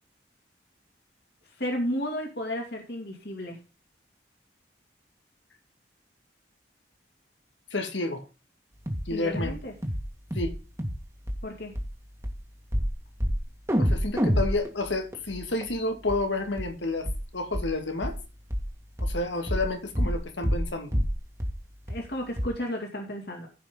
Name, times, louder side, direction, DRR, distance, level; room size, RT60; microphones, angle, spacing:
voice 1, 1.6-3.6 9.1-9.7 11.4-11.7 21.9-23.5, equal, 60° left, 2.8 m, -33 dB
voice 2, 7.7-8.3 9.1-9.5 10.3-10.6 13.8-18.2 19.0-20.9, left 2 dB, 85° left, 2.2 m, -30 dB
sound 1, 8.9-9.1 9.3-9.6 9.8-10.1 10.3-10.5 10.8-11.0 11.3-11.4 11.8-11.9 12.2-12.3 12.7-12.9 13.2-13.4 13.7-15.7 16.1-16.2 16.6-16.7 17.1-17.2 17.5-17.7 18.0-18.2 18.5-18.7 19.0-19.2 19.5-19.7 20.0-20.2 20.4-20.7 20.9-21.1 21.4-21.6 21.9-22.0 22.4-22.5, equal, 15° right, 2.0 m, -27 dB
15.0 x 5.8 x 3.8 m
head